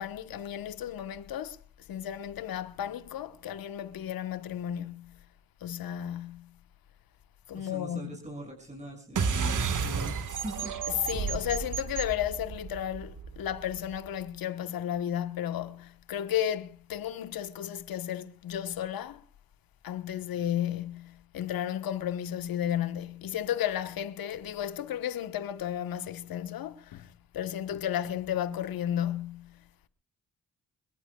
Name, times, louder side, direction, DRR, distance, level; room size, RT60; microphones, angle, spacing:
voice 1, 0.0-1.6 1.9-5.1 5.6-6.5 7.5-8.1 11.0-19.2 19.8-27.1 27.3-29.5, left 10 dB, 75° left, 1.3 m, -33 dB
voice 2, 7.5-10.8, right 1 dB, 20° right, 6.5 m, -42 dB
sound 1, 9.2-14.1, right 5 dB, 55° right, 1.7 m, -32 dB
24.0 x 22.0 x 2.4 m
supercardioid pair, 55°, 35 cm